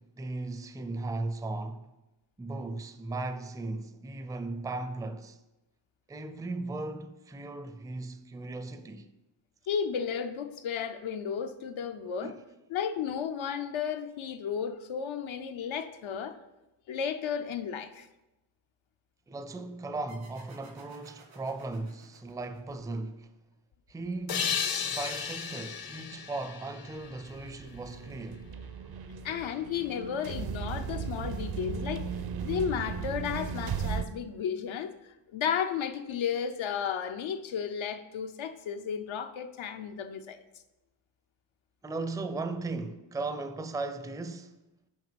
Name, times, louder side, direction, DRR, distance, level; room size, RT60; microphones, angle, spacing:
voice 1, 0.0-1.9 2.4-5.4 6.1-9.1 12.2-12.3 19.3-23.3 23.9-28.5 41.8-44.6, right 2 dB, 10° right, 0.4 m, -37 dB
voice 2, 9.7-12.3 12.7-16.4 16.9-18.1 29.2-32.1 32.4-40.4, left 7 dB, 80° left, 0.8 m, -33 dB
sound 1, 20.1-23.4, right 3 dB, 90° right, 2.3 m, -56 dB
sound 2, 24.3-27.8, left 7 dB, 50° left, 0.7 m, -34 dB
sound 3, 27.0-34.0, right 6 dB, 55° right, 0.6 m, -36 dB
6.4 x 5.4 x 6.9 m
wide cardioid pair, 120°, 46 cm